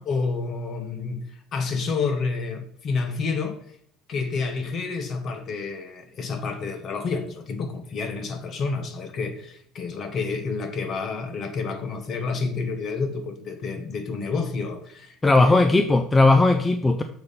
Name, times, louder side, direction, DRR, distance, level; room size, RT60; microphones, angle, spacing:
voice 1, 0.1-1.3 1.5-3.6 4.1-15.6, left 4 dB, 40° left, 1.1 m, -29 dB
voice 2, 15.2-17.0, left 2 dB, 15° left, 0.4 m, -17 dB
7.0 x 4.2 x 5.2 m
cardioid pair, 140°, 0 cm